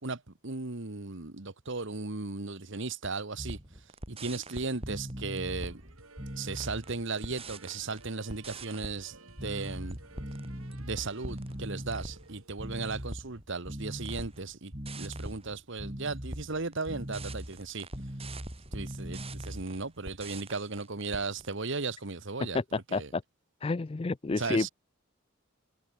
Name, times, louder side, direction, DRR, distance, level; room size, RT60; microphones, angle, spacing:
voice 1, 0.0-3.6 4.1-5.8 6.4-10.0 10.8-17.9 18.7-23.1 24.3-24.7, right 3 dB, 60° right, 1.5 m, -36 dB
sound 1, 3.4-8.0 8.3-21.7, right 1 dB, 30° right, 4.9 m, -41 dB
sound 2, 5.7-13.1, right 3 dB, 85° right, 7.1 m, -55 dB
voice 2, 22.9-23.2 23.6-24.7, left 3 dB, 25° left, 0.4 m, -29 dB
head